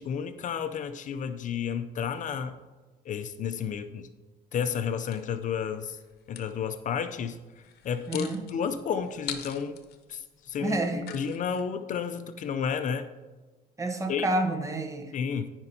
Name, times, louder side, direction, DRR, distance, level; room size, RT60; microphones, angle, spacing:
voice 1, 0.0-2.6 3.1-4.1 4.5-6.0 6.3-7.4 7.8-9.8 10.1-13.1 14.1-14.3 15.1-15.5, left 7 dB, 50° left, 9 dB, 0.5 m, -31 dB
sound 1, 5.1-6.5 7.6-11.6, left 9 dB, 70° left, 0.8 m, -43 dB
voice 2, 8.1-8.4 10.6-11.0 13.8-15.1, right 2 dB, 20° right, 4 dB, 0.8 m, -29 dB
15.0 x 5.2 x 2.7 m, 1.3 s
cardioid pair, 110°, 17 cm